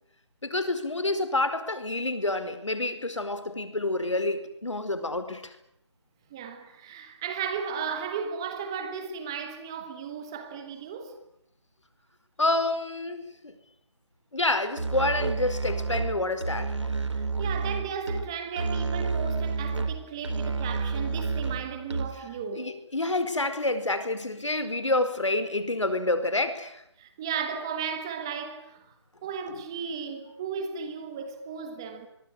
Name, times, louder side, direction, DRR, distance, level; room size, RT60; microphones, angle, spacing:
voice 1, 0.4-5.5 12.4-13.5 14.3-16.7 22.5-26.8, left 2 dB, 85° left, 5.0 m, -28 dB
voice 2, 6.3-11.2 17.1-22.7 27.0-28.8 29.2-32.1, right 6 dB, 10° right, 1.2 m, -35 dB
Musical instrument, 14.8-22.4, right 4 dB, 75° right, 3.6 m, -30 dB
25.0 x 22.5 x 8.8 m
figure-of-eight pair, 170°, 15 cm